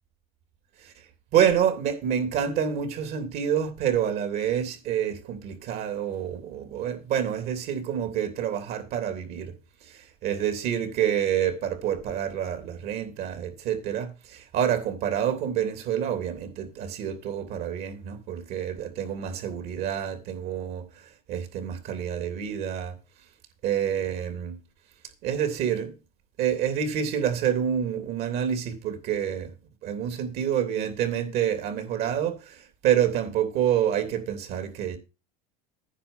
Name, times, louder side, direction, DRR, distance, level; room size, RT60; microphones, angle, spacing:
voice 1, 1.3-9.5 9.8-20.9 21.3-23.0 23.6-24.6 25.2-25.9 26.4-29.5 29.8-35.0, right 9 dB, 55° right, 3.2 m, -27 dB
10.0 x 6.8 x 7.1 m
supercardioid pair, 110°, 19 cm